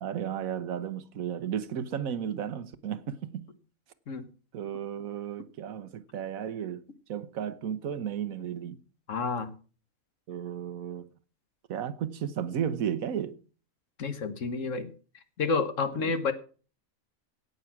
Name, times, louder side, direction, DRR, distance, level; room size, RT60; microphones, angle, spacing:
voice 1, 0.0-3.5 4.5-6.8 7.1-8.8 10.3-11.1 11.7-13.4 15.9-16.2, right 9 dB, 85° right, 1.4 m, -34 dB
voice 2, 9.1-9.5 14.0-14.9 15.4-16.3, left 4 dB, 65° left, 1.5 m, -29 dB
17.0 x 6.3 x 6.0 m
omnidirectional pair, 1.4 m